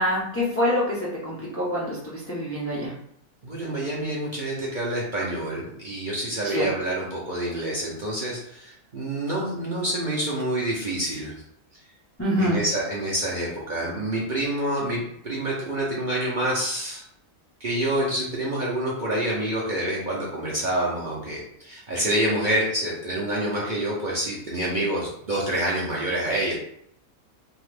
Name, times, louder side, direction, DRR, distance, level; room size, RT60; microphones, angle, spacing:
voice 1, 0.0-2.9 6.4-6.7 12.2-12.6, equal, 20° left, -6 dB, 0.4 m, -25 dB
voice 2, 3.4-11.3 12.4-17.0 17.6-26.6, right 1 dB, 45° right, -6 dB, 0.6 m, -27 dB
2.7 x 2.4 x 3.3 m, 0.69 s
omnidirectional pair, 1.5 m